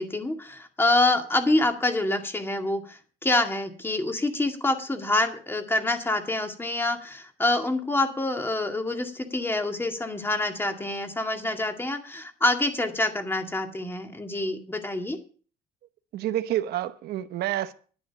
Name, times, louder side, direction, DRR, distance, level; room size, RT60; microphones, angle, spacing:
voice 1, 0.0-15.2, left 2 dB, 15° left, 2.1 m, -26 dB
voice 2, 16.1-17.7, right 13 dB, 70° right, 1.0 m, -28 dB
10.5 x 9.4 x 5.8 m
cardioid pair, 110°, 17 cm